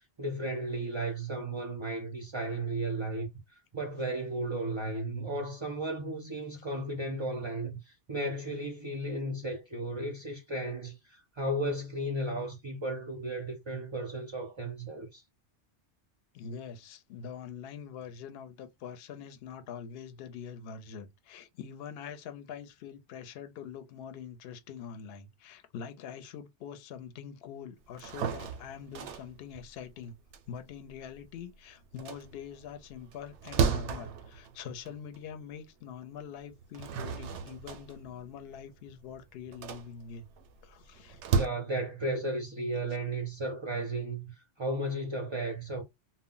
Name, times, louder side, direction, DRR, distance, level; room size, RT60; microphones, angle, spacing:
voice 1, 0.2-3.3 3.7-15.2 41.3-45.8, right 1 dB, 40° right, 0.4 m, -34 dB
voice 2, 16.3-30.1 30.5-40.3 40.6-41.2, left 7 dB, 65° left, 0.7 m, -44 dB
sound 1, 27.9-31.4 31.8-35.3 35.8-35.9 36.5-41.5, right 6 dB, 90° right, 0.9 m, -34 dB
2.1 x 2.1 x 3.7 m
omnidirectional pair, 1.1 m